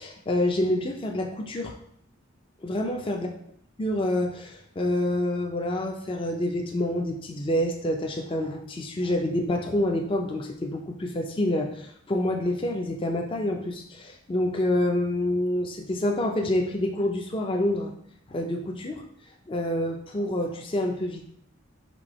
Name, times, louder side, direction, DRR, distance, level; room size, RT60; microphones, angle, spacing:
voice 1, 0.0-1.7 2.6-3.3 3.8-17.9 18.3-19.0 19.5-21.2, left 1 dB, 25° left, 2 dB, 0.4 m, -27 dB
4.3 x 2.7 x 4.1 m, 0.67 s
head